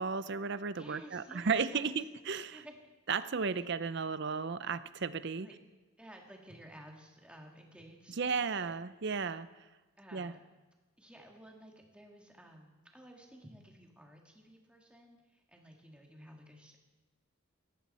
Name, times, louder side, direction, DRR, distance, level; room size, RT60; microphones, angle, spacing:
voice 1, 0.0-2.6 3.1-5.5 8.2-9.5 10.1-10.3, right 5 dB, 55° right, 14 dB, 0.6 m, -34 dB
voice 2, 0.8-2.0 2.5-2.8 3.5-3.7 5.4-5.5 6.0-8.7 10.0-10.4 11.0-16.8, equal, 5° right, 0 dB, 1.9 m, -54 dB
18.5 x 14.5 x 4.3 m, 1.2 s
head